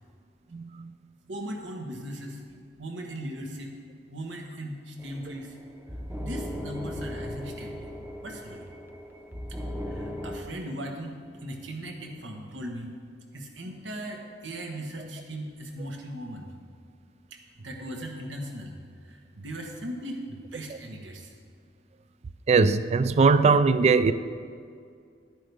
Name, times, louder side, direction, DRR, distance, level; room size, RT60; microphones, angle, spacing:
voice 1, 0.5-0.9 22.5-24.1, right 4 dB, 35° right, 0.3 m, -20 dB
voice 2, 1.3-2.4 2.8-3.7 4.1-5.6 6.2-7.9 8.2-8.7 9.9-12.9 13.3-16.5 17.3-21.3, right 1 dB, 90° right, 1.3 m, -38 dB
sound 1, 5.0-10.4, left 1 dB, 10° right, 0.7 m, -37 dB
10.5 x 10.0 x 3.5 m
head